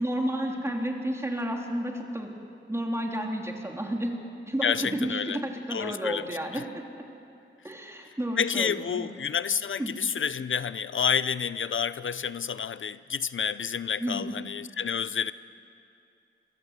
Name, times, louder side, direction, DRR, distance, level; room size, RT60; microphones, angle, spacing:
voice 1, 0.0-4.2 4.5-6.8 7.6-9.1 9.8-9.9 14.0-14.4, right 1 dB, 15° right, 0 dB, 3.5 m, -31 dB
voice 2, 4.6-5.4 5.7-6.2 6.5-6.6 8.4-15.3, left 7 dB, 70° left, 15 dB, 0.5 m, -29 dB
27.5 x 23.0 x 8.2 m, 2.6 s
wide cardioid pair, 95°, 21 cm